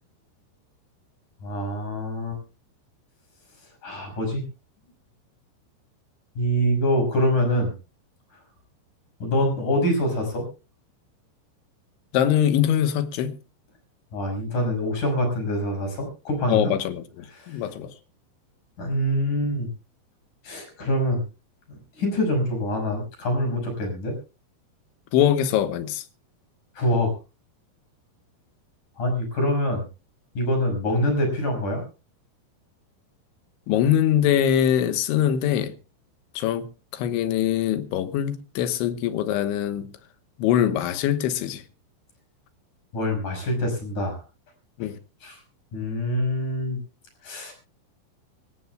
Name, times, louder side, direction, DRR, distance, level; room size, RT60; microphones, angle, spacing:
voice 1, 1.4-2.4 3.8-4.4 6.3-7.7 9.2-10.5 14.1-16.7 17.3-17.6 18.8-19.7 20.4-21.2 21.7-24.2 26.8-27.1 29.0-29.8 30.3-31.8 42.9-44.2 45.2-45.4 45.7-46.8 47.2-47.5, equal, 45° left, 6.9 m, -25 dB
voice 2, 12.1-13.4 16.5-18.0 25.1-26.1 33.7-35.7 36.4-36.7 36.9-39.9 40.4-41.6 44.8-45.0, left 10 dB, 85° left, 3.5 m, -23 dB
25.0 x 15.5 x 2.3 m
omnidirectional pair, 5.3 m